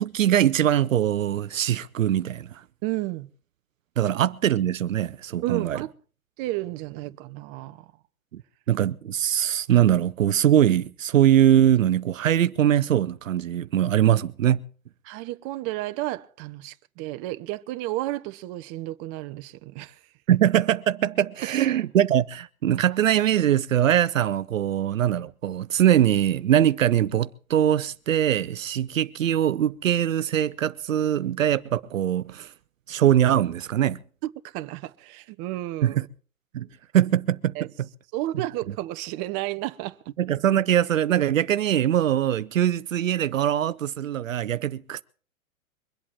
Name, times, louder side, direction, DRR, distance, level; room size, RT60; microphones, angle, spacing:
voice 1, 0.0-2.6 4.0-5.8 8.3-8.4 8.7-14.6 20.3-32.5 32.9-34.0 35.8-36.1 36.5-36.7 36.9-37.5 40.2-45.0, right 11 dB, 70° right, 0.8 m, -22 dB
voice 2, 2.8-3.3 5.4-5.9 6.4-7.9 15.0-20.0 21.6-21.7 34.2-36.1 37.5-37.7 38.1-40.0, right 17 dB, 35° right, 0.9 m, -32 dB
23.0 x 8.4 x 7.3 m
figure-of-eight pair, 105°, 41 cm